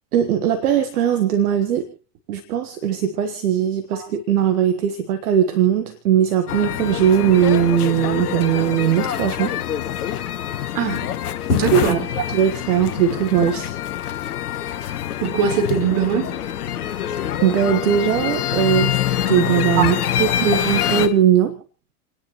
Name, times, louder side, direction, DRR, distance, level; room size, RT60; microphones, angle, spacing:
voice 1, 0.1-1.9 2.3-9.5 11.7-12.0 12.3-13.7 17.4-19.0 19.3-21.5, right 9 dB, 75° right, 8 dB, 1.5 m, -19 dB
sound 1, 6.5-21.1, left 11 dB, 80° left, 1.2 m, -25 dB
voice 2, 11.5-12.0 15.2-16.4 19.8-19.9 20.4-20.5, right 7 dB, 55° right, 2 dB, 4.4 m, -21 dB
30.0 x 10.0 x 3.1 m, 0.40 s
hypercardioid pair, 85°, 45 cm